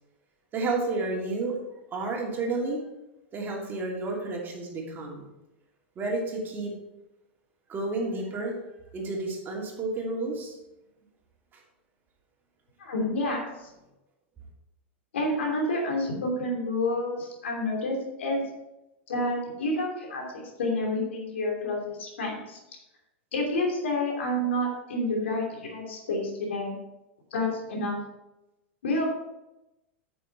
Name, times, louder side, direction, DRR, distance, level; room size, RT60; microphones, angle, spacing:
voice 1, 0.5-1.5 1.9-2.9 3.3-5.3 6.0-6.7 7.7-8.5 8.9-10.6, right 3 dB, 30° right, -1 dB, 2.7 m, -31 dB
voice 2, 12.8-13.7 15.1-18.4 19.1-22.6 23.3-26.7 27.3-28.0 28.8-29.1, left 1 dB, 80° left, 0 dB, 2.9 m, -29 dB
9.1 x 7.0 x 4.1 m, 0.94 s
hypercardioid pair, 100°, 6 cm